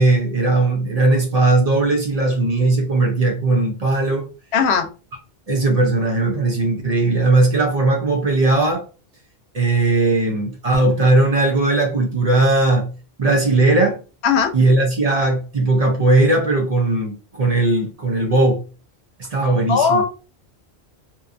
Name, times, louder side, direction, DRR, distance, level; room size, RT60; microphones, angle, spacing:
voice 1, 0.0-4.2 5.5-8.8 9.5-12.9 13.2-14.0 14.5-18.6 19.3-20.0, right 2 dB, 45° right, 0.6 m, -18 dB
voice 2, 4.5-4.9 14.2-14.5 19.7-20.0, left 6 dB, 85° left, 0.9 m, -17 dB
2.7 x 2.2 x 2.4 m
omnidirectional pair, 1.1 m